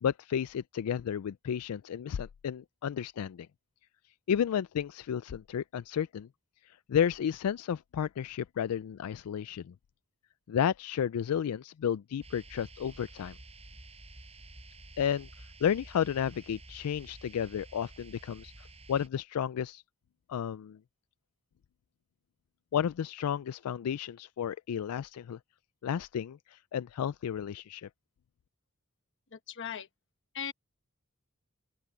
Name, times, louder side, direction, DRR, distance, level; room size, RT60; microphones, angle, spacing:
voice 1, 0.0-3.5 4.3-6.3 6.6-9.7 10.5-13.4 15.0-19.8 20.3-20.8 22.7-25.4 25.8-27.9, left 8 dB, 85° left, 0.3 m, -32 dB
sound 1, 12.2-19.1, right 2 dB, 30° right, 7.8 m, -51 dB
voice 2, 29.3-29.9 30.3-30.5, left 8 dB, 55° left, 1.2 m, -38 dB
open air
head